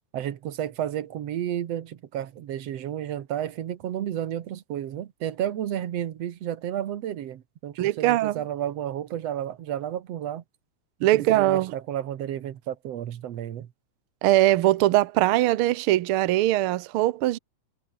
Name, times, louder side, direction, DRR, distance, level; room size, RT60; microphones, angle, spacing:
voice 1, 0.1-10.4 11.0-13.7, right 11 dB, 65° right, 2.3 m, -32 dB
voice 2, 7.8-8.4 11.0-11.7 14.2-17.4, right 15 dB, 80° right, 1.2 m, -21 dB
omnidirectional pair, 3.3 m